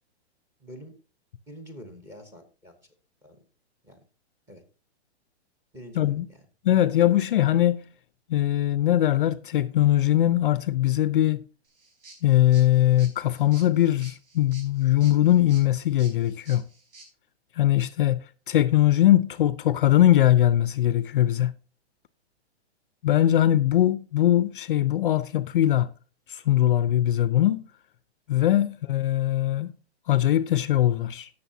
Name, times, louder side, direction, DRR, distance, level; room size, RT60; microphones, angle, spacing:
voice 1, 0.6-0.9 1.5-2.8 3.2-3.4 3.8-4.0 4.5-4.6 5.7-6.2, equal, 10° right, 0.9 m, -45 dB
voice 2, 6.0-6.3 6.6-7.9 8.3-11.4 12.2-16.6 17.6-18.2 18.5-21.5 23.0-25.9 26.3-27.6 28.3-29.7 30.1-31.3, left 13 dB, 50° left, 0.5 m, -21 dB
sound 1, 11.6-17.1, right 3 dB, 55° right, 4.6 m, -51 dB
16.5 x 6.6 x 2.7 m
hypercardioid pair, 165°, 34 cm